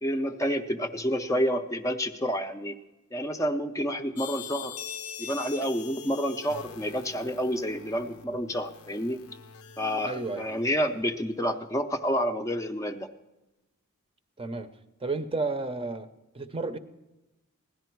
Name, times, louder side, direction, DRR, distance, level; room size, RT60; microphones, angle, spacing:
voice 1, 0.0-2.7 3.1-4.8 5.2-9.2 9.8-13.1, equal, 15° left, 6 dB, 0.6 m, -29 dB
sound 1, 4.2-10.9, left 6 dB, 80° left, 0.7 m, -43 dB
voice 2, 10.0-10.5 14.4-14.7 15.0-16.1 16.3-16.8, right 3 dB, 25° right, 9 dB, 0.7 m, -31 dB
17.0 x 11.0 x 4.6 m, 1.0 s
head